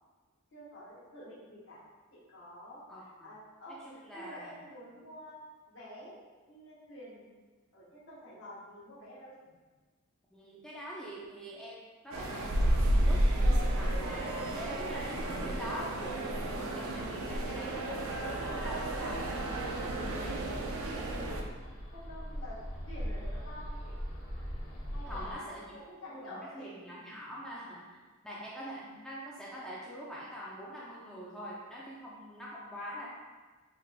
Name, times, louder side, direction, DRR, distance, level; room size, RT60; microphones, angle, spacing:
voice 1, 0.5-1.8 2.1-5.4 5.7-6.2 6.5-7.2 7.7-9.6 21.2-21.5 21.9-24.0 24.9-25.5 25.7-26.9 32.9-33.1, left 1 dB, 60° left, -8 dB, 1.3 m, -49 dB
voice 2, 2.9-3.3 3.7-4.5 10.3-13.2 13.7-19.2 25.1-25.7 26.1-28.0 28.2-33.1, equal, 5° left, -6 dB, 0.4 m, -44 dB
sound 1, 12.1-21.4, right 1 dB, 70° right, 0.5 m, -31 dB
Bird, 18.3-25.3, equal, 85° left, 0.9 m, -41 dB
4.1 x 3.2 x 2.2 m, 1.3 s
head